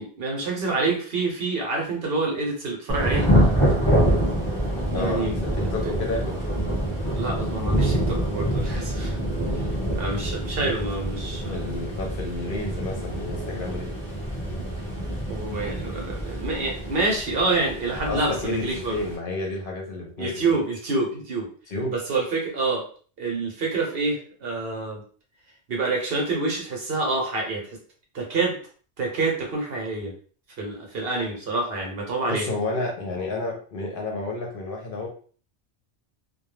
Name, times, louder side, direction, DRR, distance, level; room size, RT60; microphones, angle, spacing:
voice 1, 0.0-3.3 4.9-5.3 5.8-5.9 7.1-9.2 9.9-11.7 15.3-19.0 20.2-21.5 21.9-22.8 23.2-25.0 25.7-27.8 28.1-28.6 29.0-30.1 30.6-32.5, right 3 dB, 60° right, 0 dB, 0.9 m, -27 dB
Thunder / Rain, 2.9-19.2, equal, 5° left, 1.0 m, -26 dB
voice 2, 4.9-6.4 11.5-13.9 18.0-20.6 21.7-22.0 32.3-35.1, left 2 dB, 55° left, 0 dB, 0.7 m, -31 dB
2.3 x 2.2 x 3.1 m, 0.43 s
omnidirectional pair, 1.2 m